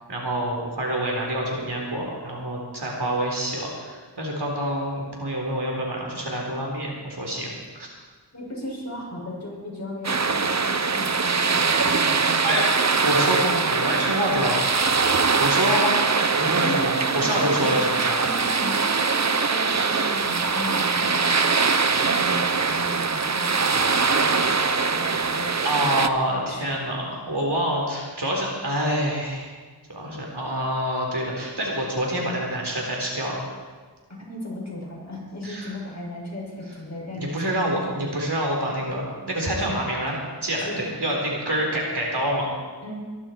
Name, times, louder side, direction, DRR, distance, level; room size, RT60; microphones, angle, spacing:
voice 1, 0.1-7.9 11.8-11.9 12.4-12.6 13.0-14.6 15.4-16.0 16.4-18.2 25.6-29.5 29.9-33.4 35.4-35.7 37.1-42.5, equal, 65° right, -2 dB, 4.1 m, -27 dB
voice 2, 8.3-12.4 16.6-17.8 18.2-26.2 26.5-26.9 34.2-38.2 39.6-39.9 40.6-41.2 42.8-43.0, left 1 dB, 40° left, -3 dB, 6.2 m, -36 dB
sound 1, 10.0-26.1, right 4 dB, 40° right, 0.8 m, -22 dB
23.0 x 11.5 x 4.5 m, 1.4 s
wide cardioid pair, 50°, 42 cm